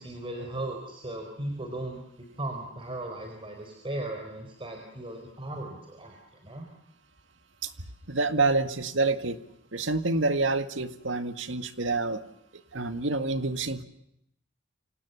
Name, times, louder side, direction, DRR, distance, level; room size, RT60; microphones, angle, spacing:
voice 1, 0.0-2.0 2.4-6.2 6.4-6.7, right 1 dB, 30° right, 3 dB, 4.7 m, -37 dB
voice 2, 8.1-9.4 9.7-12.2 12.7-13.8, right 3 dB, 70° right, 9 dB, 2.0 m, -27 dB
29.5 x 26.5 x 7.2 m, 0.78 s
head